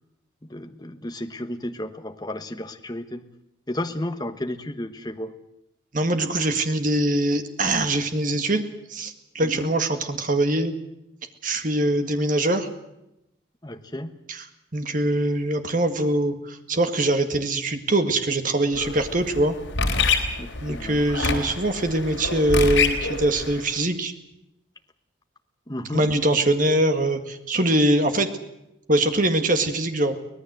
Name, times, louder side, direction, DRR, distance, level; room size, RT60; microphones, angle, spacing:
voice 1, 0.4-3.3 3.7-5.4 9.4-9.7 13.6-14.2 20.4-21.0 25.7-26.1, left 1 dB, 20° left, 7 dB, 1.2 m, -33 dB
voice 2, 5.9-10.7 11.4-12.7 14.3-14.4 14.7-19.6 20.6-24.1 25.9-28.3 28.9-30.1, right 1 dB, 45° right, 7 dB, 2.0 m, -23 dB
sound 1, 18.7-23.7, left 4 dB, 75° left, 3.9 m, -26 dB
24.5 x 18.0 x 7.8 m, 0.87 s
head